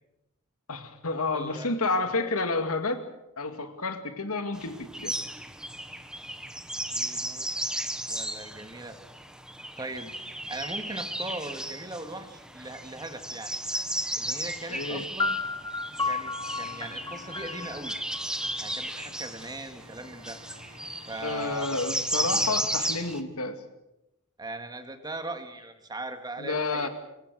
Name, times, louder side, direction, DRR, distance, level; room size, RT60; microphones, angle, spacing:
voice 1, 0.7-3.0 3.4-5.2 14.7-15.1 21.2-23.6 26.4-26.9, left 3 dB, 80° left, 8 dB, 2.3 m, -30 dB
voice 2, 1.3-1.7 6.9-7.5 8.1-9.0 9.8-10.1 10.5-13.5 14.2-15.4 16.0-18.0 18.6-20.4 21.1-21.7 24.4-26.9, right 2 dB, 20° right, 7 dB, 2.1 m, -39 dB
sound 1, 4.5-23.2, right 1 dB, 5° right, 1.4 m, -35 dB
sound 2, 15.2-19.0, left 3 dB, 20° left, 1.5 m, -33 dB
Organ, 16.3-23.2, right 1 dB, 80° right, 3.9 m, -52 dB
25.0 x 23.0 x 6.4 m, 0.90 s
head